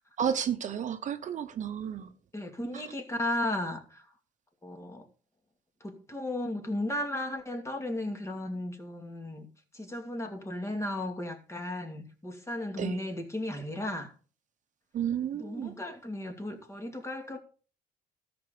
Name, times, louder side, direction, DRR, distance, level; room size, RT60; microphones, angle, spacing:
voice 1, 0.2-2.1 12.8-13.0 14.9-15.8, right 8 dB, 45° right, 0.9 m, -32 dB
voice 2, 2.3-4.0 4.6-5.0 5.8-9.5 9.7-14.1 15.3-17.4, left 1 dB, 15° left, 2.4 m, -35 dB
13.5 x 6.0 x 5.2 m
cardioid pair, 110°, 17 cm